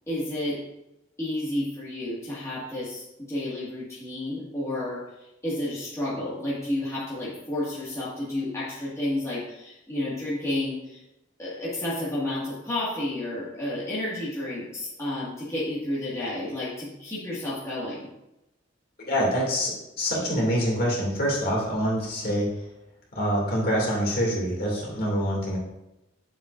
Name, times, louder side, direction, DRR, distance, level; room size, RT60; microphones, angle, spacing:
voice 1, 0.1-0.6 1.2-5.1 5.4-11.0 11.4-18.1, left 1 dB, 15° left, -9 dB, 1.8 m, -31 dB
voice 2, 19.1-19.7 20.0-22.5 23.1-25.6, equal, 50° left, -4 dB, 2.5 m, -25 dB
9.1 x 7.2 x 2.6 m, 0.91 s
head